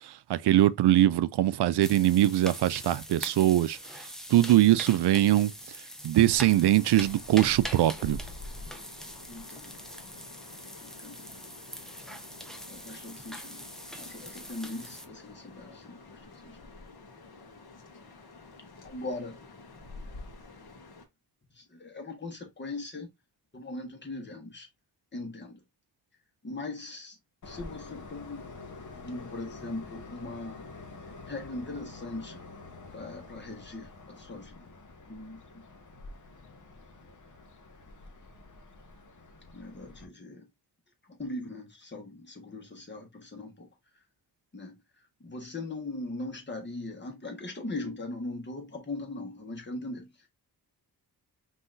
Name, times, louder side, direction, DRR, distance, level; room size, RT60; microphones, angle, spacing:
voice 1, 0.3-3.8 4.3-5.5 6.0-8.2, right 13 dB, 80° right, 0.5 m, -22 dB
sound 1, 1.8-15.1, equal, ahead, 0.7 m, -43 dB
sound 2, 6.3-21.1, left 2 dB, 70° left, 1.3 m, -48 dB
voice 2, 9.3-9.8 10.8-11.2 12.7-13.7 13.9-16.7 18.8-19.4 20.6-20.8 21.5-23.1 23.5-24.7 25.1-25.6 26.4-27.2 27.4-30.7 31.0-32.4 32.9-34.7 35.1-35.6 39.5-40.5 41.0-43.7 44.5-44.8 45.2-50.3, left 2 dB, 30° left, 1.6 m, -40 dB
Train, 27.4-40.1, left 3 dB, 50° left, 1.1 m, -47 dB
5.6 x 3.1 x 2.6 m
wide cardioid pair, 115°, 39 cm